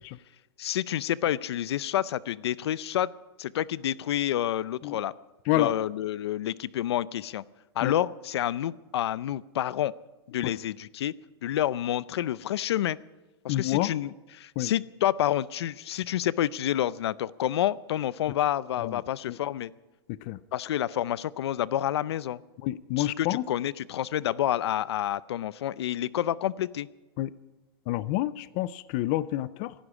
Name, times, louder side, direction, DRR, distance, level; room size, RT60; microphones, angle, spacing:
voice 1, 0.6-3.1 3.4-5.1 5.5-7.4 7.8-9.9 10.3-11.1 11.4-13.0 13.4-19.7 20.5-22.4 23.0-26.9, left 12 dB, 85° left, 19 dB, 0.5 m, -29 dB
voice 2, 13.5-13.9 14.6-14.7 18.8-19.0 19.3-19.4 20.1-20.4 22.6-23.4 27.2-27.3 27.9-29.7, left 15 dB, 30° left, 18 dB, 0.4 m, -28 dB
24.5 x 11.5 x 4.9 m, 1.1 s
supercardioid pair, 165°, 14 cm